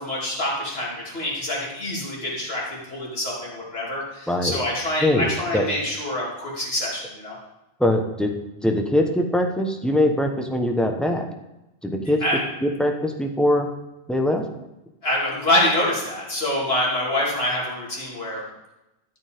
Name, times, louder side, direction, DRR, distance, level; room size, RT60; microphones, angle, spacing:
voice 1, 0.0-7.4 12.2-12.4 15.0-18.4, left 1 dB, 70° left, -4 dB, 3.0 m, -26 dB
voice 2, 4.3-4.6 5.0-5.3 5.5-5.6 7.8-8.3 8.6-11.3 11.8-12.2 12.6-13.7 14.1-14.4, left 1 dB, ahead, 2 dB, 1.0 m, -22 dB
13.0 x 8.4 x 3.6 m, 0.95 s
omnidirectional pair, 1.1 m